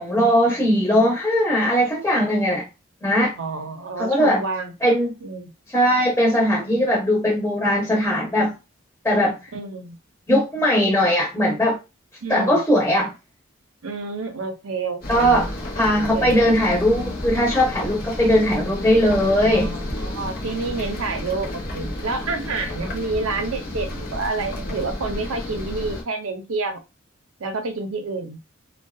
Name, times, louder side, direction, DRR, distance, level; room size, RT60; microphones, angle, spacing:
voice 1, 0.0-2.7 3.0-3.3 4.0-4.4 4.8-5.1 5.7-8.5 9.0-9.4 10.3-11.8 12.3-13.1 15.1-15.5 15.8-19.7, equal, 10° left, 0.7 m, -19 dB
voice 2, 3.4-4.7 5.2-5.5 9.5-10.0 12.2-12.6 13.8-15.5 16.1-16.5 16.9-17.1 19.4-26.8 27.4-28.4, right 3 dB, 90° right, 0.6 m, -29 dB
sound 1, 15.0-26.0, left 1 dB, 45° left, 0.7 m, -31 dB
2.6 x 2.2 x 2.3 m
head